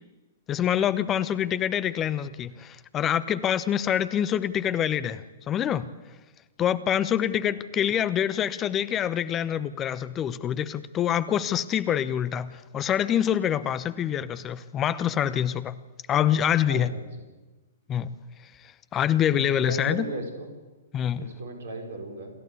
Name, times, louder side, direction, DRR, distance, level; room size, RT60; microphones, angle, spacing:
voice 1, 0.5-5.9 6.6-15.8 16.1-16.9 17.9-18.1 18.9-20.0 20.9-21.3, left 10 dB, 25° left, 0.9 m, -26 dB
voice 2, 16.7-17.1 19.4-20.5 21.2-22.3, right 1 dB, 65° right, 5.0 m, -35 dB
28.5 x 12.0 x 8.3 m
figure-of-eight pair, 110°, 0 cm